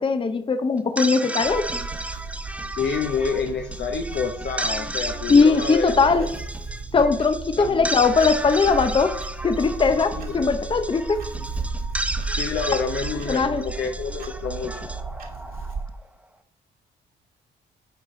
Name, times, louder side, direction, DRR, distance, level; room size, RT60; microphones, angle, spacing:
voice 1, 0.0-1.7 5.3-6.3 6.9-11.3 13.3-13.6, left 4 dB, 25° left, 0.7 m, -20 dB
sound 1, 0.8-16.0, right 1 dB, 5° right, 0.7 m, -33 dB
Clock, 1.4-15.9, right 4 dB, 45° right, 1.8 m, -34 dB
voice 2, 2.8-6.3 7.6-7.9 10.1-10.5 12.3-14.8, left 5 dB, 60° left, 0.9 m, -28 dB
8.4 x 4.6 x 3.8 m
cardioid pair, 90°, 20 cm